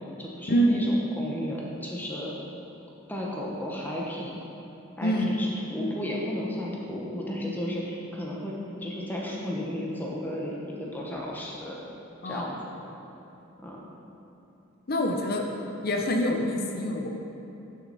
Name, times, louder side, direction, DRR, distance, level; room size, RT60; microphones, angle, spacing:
voice 1, 0.0-2.3 3.1-4.3 5.0-8.6 8.8-11.8 12.2-12.7 13.6-13.8, left 1 dB, 10° left, -3 dB, 1.0 m, -33 dB
voice 2, 5.0-5.3 12.2-12.5 14.9-15.4 15.8-17.1, equal, 45° left, 1 dB, 0.7 m, -25 dB
9.5 x 6.7 x 4.1 m, 3.0 s
head